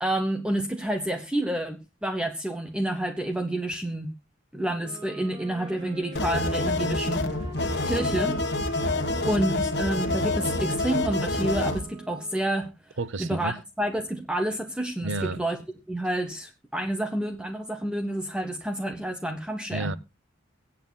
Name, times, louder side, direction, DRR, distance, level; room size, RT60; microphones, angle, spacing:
voice 1, 0.0-4.1 4.5-7.2 7.8-8.4 9.2-12.7 13.2-15.6 15.9-19.9, right 1 dB, 5° right, 0.9 m, -29 dB
sound 1, 4.7-12.6, right 2 dB, 25° right, 2.7 m, -45 dB
sound 2, 6.2-11.8, left 2 dB, 55° left, 1.5 m, -27 dB
voice 2, 13.0-13.6 15.0-15.4 19.7-20.0, right 3 dB, 70° right, 0.7 m, -31 dB
23.5 x 8.5 x 2.2 m
head